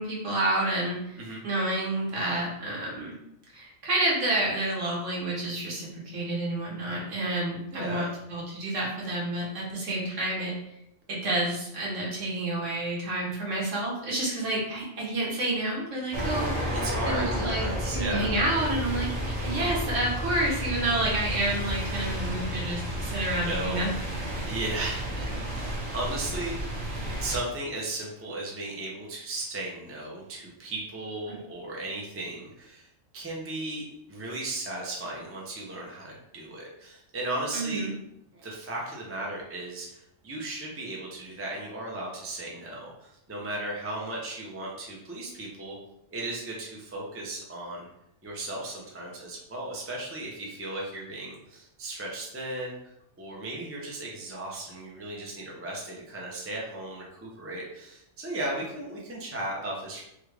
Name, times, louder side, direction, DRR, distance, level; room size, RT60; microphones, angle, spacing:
voice 1, 0.0-1.2 1.4-3.2 3.5-10.5 11.1-16.7 17.0-23.9 31.3-31.4 37.5-37.9, right 1 dB, 65° right, -4 dB, 1.3 m, -29 dB
voice 2, 7.7-8.1 16.7-18.3 18.5-18.7 23.4-23.8 24.4-26.8 27.2-32.9 33.1-37.9 38.3-45.8 46.1-47.9 48.2-60.0, right 2 dB, 20° right, -3 dB, 0.3 m, -36 dB
sound 1, 16.1-27.4, equal, 45° right, 0.8 m, -32 dB
3.2 x 2.3 x 3.2 m, 0.81 s
omnidirectional pair, 1.4 m